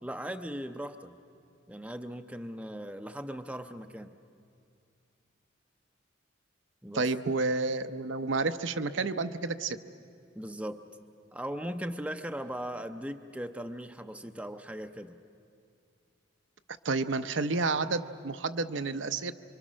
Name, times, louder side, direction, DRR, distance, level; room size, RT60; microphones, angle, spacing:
voice 1, 0.0-1.2 1.7-4.1 6.8-7.1 10.4-10.8 11.3-15.2, equal, 5° right, 7 dB, 0.5 m, -38 dB
voice 2, 6.9-9.8 16.8-19.3, right 3 dB, 70° right, 9 dB, 0.7 m, -30 dB
26.0 x 24.5 x 6.3 m, 2.4 s
head